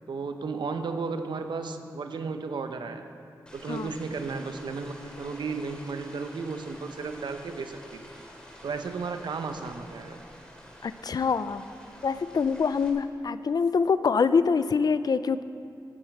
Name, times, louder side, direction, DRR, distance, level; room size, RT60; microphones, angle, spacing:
voice 1, 0.1-3.0 3.5-8.1 8.6-10.2, right 4 dB, 85° right, 7 dB, 0.8 m, -34 dB
sound 1, 3.5-12.9, equal, 10° left, 2.7 m, -48 dB
voice 2, 10.8-11.7 12.0-15.4, left 5 dB, 60° left, 14 dB, 0.4 m, -25 dB
15.0 x 10.0 x 4.7 m, 2.5 s
wide cardioid pair, 85°, 8 cm